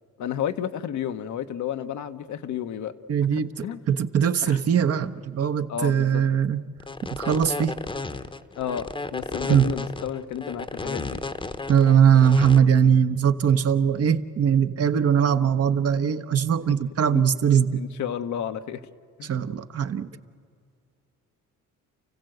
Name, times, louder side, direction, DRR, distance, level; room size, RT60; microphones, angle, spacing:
voice 1, 0.2-2.9 3.3-3.8 4.4-4.6 5.7-6.2 8.6-11.2 17.1-17.2 17.7-18.8 19.2-19.3, left 9 dB, 70° left, 8 dB, 1.0 m, -32 dB
voice 2, 3.1-3.5 3.9-6.6 7.1-7.8 9.5-9.7 11.7-17.8 19.2-20.1, right 8 dB, 50° right, 9 dB, 1.0 m, -21 dB
sound 1, 6.8-12.6, left 3 dB, 15° left, 0.9 m, -33 dB
29.5 x 15.5 x 7.8 m, 2.4 s
cardioid pair, 90°, 30 cm